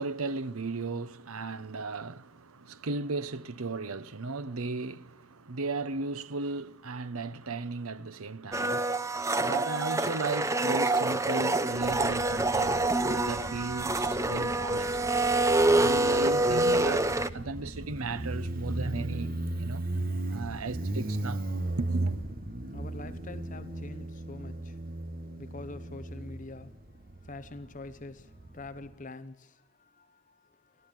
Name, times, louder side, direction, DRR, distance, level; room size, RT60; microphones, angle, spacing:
voice 1, 0.0-15.0 15.7-19.9 20.3-21.4 21.8-22.1, right 3 dB, 90° right, 1.0 m, -36 dB
Domestic sounds home sounds, 8.5-17.3, right 2 dB, 15° right, 0.7 m, -26 dB
Motorcycle, 11.7-28.9, right 2 dB, 40° right, 1.5 m, -37 dB
voice 2, 22.6-24.8 25.4-30.9, left 2 dB, 35° left, 1.0 m, -46 dB
29.5 x 13.0 x 9.1 m
head